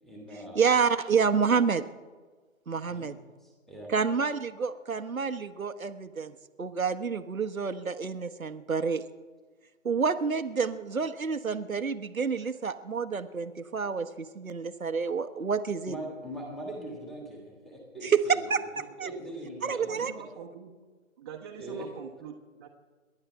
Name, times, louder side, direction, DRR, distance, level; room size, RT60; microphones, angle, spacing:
voice 1, 0.0-0.7 2.9-3.1 3.4-3.9 15.8-18.5 19.0-20.0 21.6-21.9, right 1 dB, ahead, -1 dB, 1.7 m, -41 dB
voice 2, 0.5-1.8 2.7-3.1 3.9-9.0 9.8-16.0 18.0-19.1 19.6-20.1, right 5 dB, 85° right, 9 dB, 1.2 m, -28 dB
voice 3, 19.8-20.7 21.2-22.7, right 7 dB, 20° right, -1 dB, 1.0 m, -44 dB
27.5 x 12.0 x 3.4 m, 1.4 s
figure-of-eight pair, 150°, 40 cm